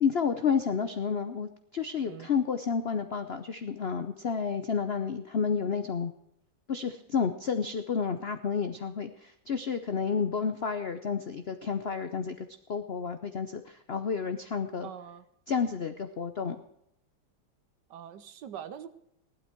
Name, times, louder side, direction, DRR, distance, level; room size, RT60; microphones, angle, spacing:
voice 1, 0.0-6.1 6.7-12.4 12.7-14.9 15.5-16.6, left 6 dB, 80° left, 9 dB, 0.5 m, -30 dB
voice 2, 14.8-15.2 17.9-18.9, right 9 dB, 65° right, 13 dB, 1.3 m, -43 dB
15.5 x 12.0 x 4.5 m, 0.78 s
omnidirectional pair, 2.2 m